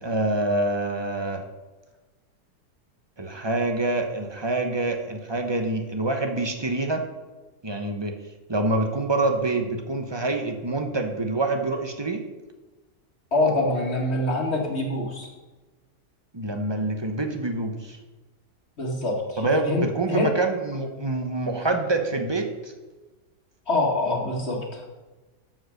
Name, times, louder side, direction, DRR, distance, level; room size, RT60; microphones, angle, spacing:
voice 1, 0.0-1.5 3.2-7.1 7.6-8.1 8.5-12.2 16.3-18.0 19.4-22.5, right 2 dB, 20° right, 5 dB, 0.8 m, -26 dB
voice 2, 13.3-15.3 18.8-20.3 23.7-24.8, left 2 dB, 40° left, -1 dB, 2.2 m, -25 dB
13.0 x 5.0 x 6.5 m, 1.2 s
omnidirectional pair, 1.7 m